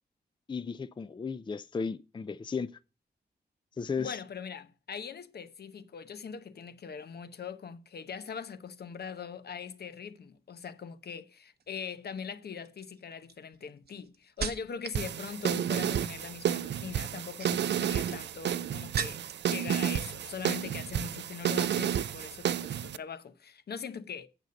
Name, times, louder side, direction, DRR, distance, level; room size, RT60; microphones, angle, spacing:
voice 1, 0.5-2.7 3.8-4.2, left 5 dB, 25° left, 0.4 m, -35 dB
voice 2, 4.0-19.2 19.5-24.3, left 6 dB, 65° left, 0.8 m, -41 dB
sound 1, 11.6-11.9 12.7-15.1 15.3-15.9 17.1-19.5 19.8-20.5 20.8-21.0, right 6 dB, 65° right, 1.0 m, -41 dB
sound 2, 15.0-23.0, right 9 dB, 85° right, 0.4 m, -31 dB
9.1 x 6.7 x 5.2 m
wide cardioid pair, 125°, 18 cm